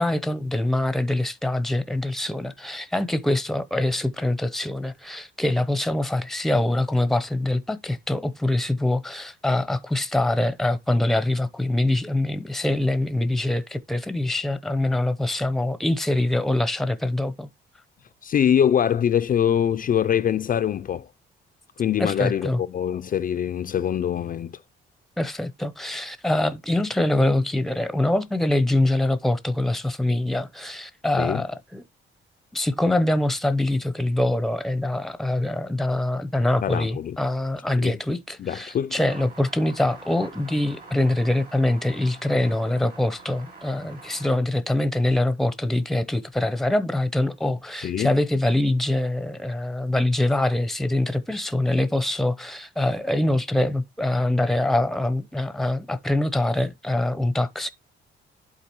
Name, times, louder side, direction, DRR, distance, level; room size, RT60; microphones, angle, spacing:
voice 1, 0.0-17.5 22.0-22.6 25.2-31.8 32.5-57.7, left 1 dB, ahead, 0.7 m, -24 dB
voice 2, 18.2-21.1 21.8-24.5 31.2-31.4 36.6-37.2 37.8-38.0 38.4-39.0 47.8-48.1, left 9 dB, 45° left, 0.4 m, -23 dB
sound 1, 39.0-44.4, right 3 dB, 50° right, 3.9 m, -45 dB
11.5 x 3.9 x 3.0 m
cardioid pair, 90°, 20 cm